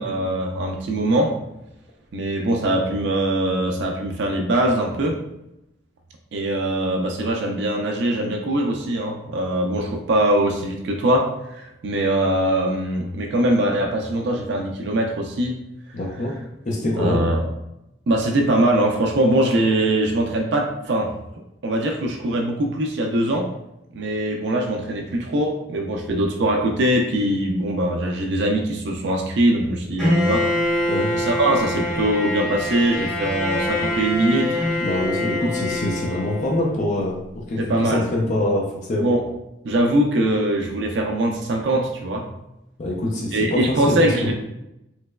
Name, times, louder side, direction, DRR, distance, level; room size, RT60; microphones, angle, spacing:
voice 1, 0.0-1.3 2.1-5.2 6.3-15.6 17.0-17.4 18.1-21.1 21.6-23.5 23.9-30.5 31.1-34.6 37.6-38.1 39.0-39.2 39.6-42.3 43.3-44.3, right 1 dB, 80° right, 1 dB, 0.4 m, -22 dB
voice 2, 15.9-16.3 16.7-17.2 30.9-31.1 34.8-37.2 37.5-39.1 42.8-44.3, left 1 dB, 45° left, -2 dB, 0.5 m, -24 dB
Bowed string instrument, 30.0-36.9, left 1 dB, ahead, 1.0 m, -25 dB
3.2 x 2.9 x 2.2 m, 0.88 s
head